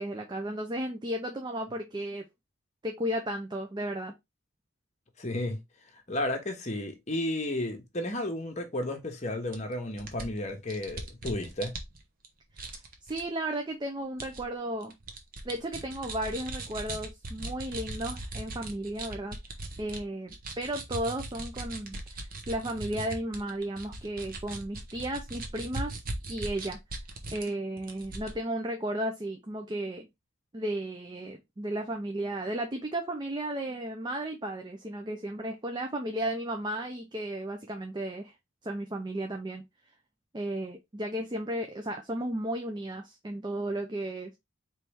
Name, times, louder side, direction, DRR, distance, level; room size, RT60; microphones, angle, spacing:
voice 1, 0.0-2.2 2.8-4.1 12.6-14.9 15.4-19.4 19.8-26.0 26.3-26.8 27.3-30.1 30.5-38.3 38.6-39.6 40.3-44.3, right 1 dB, 20° right, 0.4 m, -34 dB
voice 2, 5.2-5.6 6.1-11.7, left 1 dB, 35° left, 1.0 m, -33 dB
sound 1, 9.5-9.6 10.0-12.3 12.6-13.2 14.2-14.4 14.8-20.0 20.3-27.5 27.8-28.3, right 2 dB, 40° right, 0.8 m, -39 dB
4.5 x 3.1 x 3.4 m
head